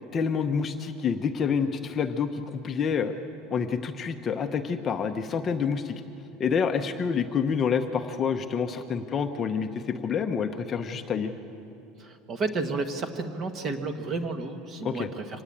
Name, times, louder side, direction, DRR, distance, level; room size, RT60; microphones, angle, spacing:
voice 1, 0.1-3.1 3.5-5.9 6.4-11.3 14.8-15.1, left 6 dB, 25° left, 6 dB, 0.8 m, -28 dB
voice 2, 12.0-15.4, right 3 dB, 25° right, 7 dB, 1.6 m, -32 dB
25.0 x 19.0 x 8.7 m, 2.8 s
cardioid pair, 170°, 0 cm